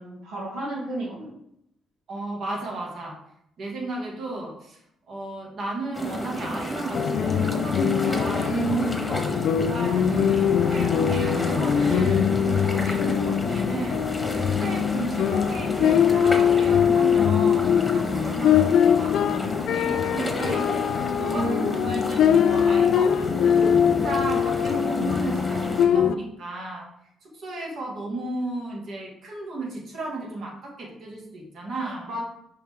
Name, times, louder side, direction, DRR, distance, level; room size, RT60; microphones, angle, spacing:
voice 1, 0.0-1.3 8.4-9.0 12.4-12.9 21.2-21.7 32.1-32.2, right 3 dB, 90° right, -4 dB, 1.3 m, -31 dB
voice 2, 2.1-3.2 3.6-12.4 12.7-14.0 14.4-26.9 27.2-32.1, right 2 dB, 65° right, -1 dB, 1.9 m, -34 dB
sound 1, 5.9-25.9, equal, 10° left, 1.2 m, -31 dB
sound 2, 6.9-26.1, left 8 dB, 70° left, 0.3 m, -22 dB
5.7 x 5.1 x 3.5 m, 0.76 s
cardioid pair, 90°, 0 cm